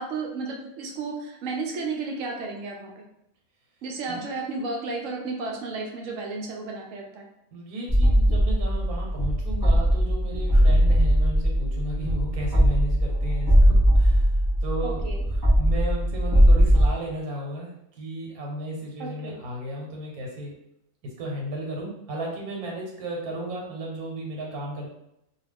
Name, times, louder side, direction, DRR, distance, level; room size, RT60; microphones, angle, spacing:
voice 1, 0.0-2.9 3.8-7.3 14.8-15.2 19.0-19.4, right 3 dB, 70° right, 0 dB, 0.9 m, -33 dB
voice 2, 7.5-15.0 15.3-20.5 21.2-24.9, right 1 dB, 85° right, -1 dB, 1.3 m, -34 dB
sound 1, 7.9-16.9, equal, 15° right, 0.9 m, -20 dB
2.4 x 2.3 x 3.3 m, 0.81 s
omnidirectional pair, 1.5 m